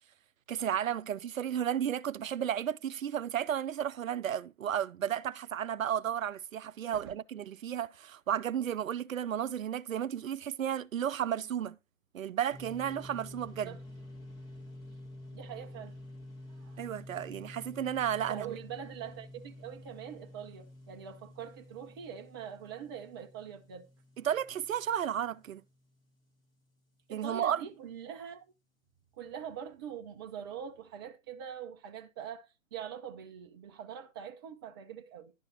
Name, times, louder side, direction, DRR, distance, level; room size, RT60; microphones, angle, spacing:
voice 1, 0.5-11.8 12.1-13.8 16.8-18.6 24.2-25.6 27.1-27.6, right 9 dB, 75° right, 0.5 m, -33 dB
sound 1, 12.5-26.0, left 1 dB, 10° left, 1.2 m, -49 dB
voice 2, 15.3-16.0 16.5-16.9 18.3-23.9 27.1-28.4 29.2-35.3, right 8 dB, 20° right, 0.6 m, -43 dB
11.0 x 5.7 x 4.2 m
figure-of-eight pair, 135°, 40 cm